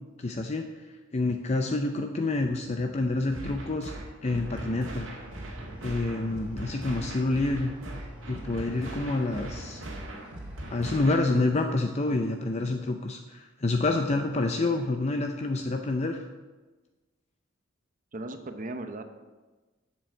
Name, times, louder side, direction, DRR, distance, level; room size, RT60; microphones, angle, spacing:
voice 1, 0.2-0.9 1.1-3.9 4.2-5.1 5.8-7.7 8.3-9.8 10.7-16.2, left 2 dB, 35° left, 4 dB, 0.5 m, -28 dB
sound 1, 3.3-11.3, right 1 dB, 75° right, 1.9 m, -40 dB
sound 2, 4.7-13.0, equal, 5° right, 1.6 m, -48 dB
voice 2, 18.1-19.0, right 2 dB, 40° right, 7 dB, 0.8 m, -37 dB
7.8 x 7.0 x 7.7 m, 1.2 s
head